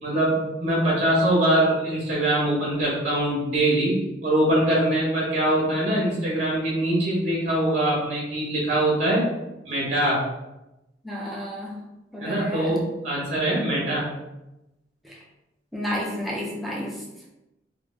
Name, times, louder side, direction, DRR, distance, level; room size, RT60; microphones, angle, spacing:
voice 1, 0.0-3.9 4.2-9.2 9.6-10.2 12.2-14.1, right 1 dB, 40° right, -4 dB, 0.8 m, -23 dB
voice 2, 11.0-11.8 12.1-12.8 15.0-15.2 15.7-17.0, equal, ahead, -4 dB, 0.4 m, -31 dB
2.6 x 2.1 x 3.1 m, 0.96 s
head